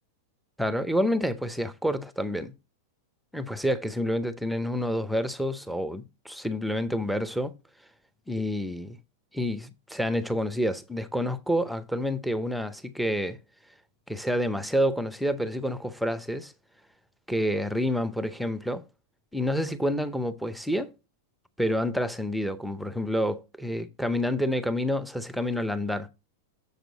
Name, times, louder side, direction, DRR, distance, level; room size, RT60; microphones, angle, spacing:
voice 1, 0.6-2.5 3.3-7.5 8.3-9.0 9.3-13.4 14.1-16.5 17.3-18.9 19.3-20.9 21.6-26.1, equal, ahead, 0.6 m, -28 dB
7.0 x 6.5 x 4.0 m
supercardioid pair, 155°, 0 cm